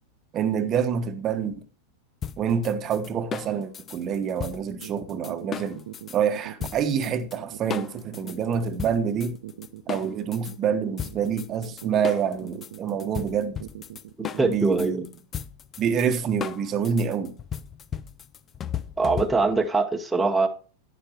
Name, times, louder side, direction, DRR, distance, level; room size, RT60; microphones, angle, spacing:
voice 1, 0.3-1.5 2.4-5.8 6.1-9.4 9.9-13.6 14.4-15.1 15.8-17.4, right 7 dB, 30° right, 1.0 m, -27 dB
sound 1, 2.2-6.2 6.6-7.4 7.7-10.6 11.0-19.7, left 8 dB, 25° left, 0.6 m, -36 dB
sound 2, 4.7-14.7, right 12 dB, 60° right, 0.8 m, -41 dB
voice 2, 14.2-15.0 19.0-20.5, right 3 dB, 5° right, 1.0 m, -23 dB
11.5 x 10.0 x 2.9 m
figure-of-eight pair, 90°, 0 cm